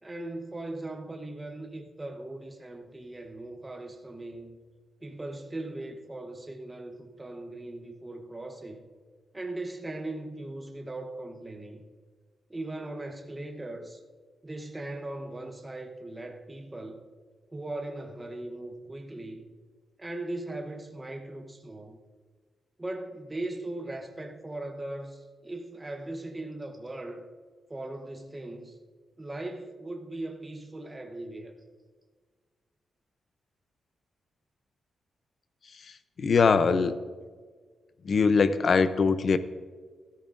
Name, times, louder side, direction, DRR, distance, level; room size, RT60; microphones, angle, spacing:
voice 1, 0.0-4.6 5.0-8.9 9.3-11.8 12.5-14.0 14.4-17.0 17.5-19.5 20.0-22.0 22.8-27.2 27.7-28.8 29.2-31.5, right 2 dB, 15° right, 0.9 m, -39 dB
voice 2, 36.2-37.0 38.0-39.4, left 5 dB, 45° left, 0.5 m, -22 dB
16.0 x 13.5 x 2.5 m
wide cardioid pair, 155°, 0 cm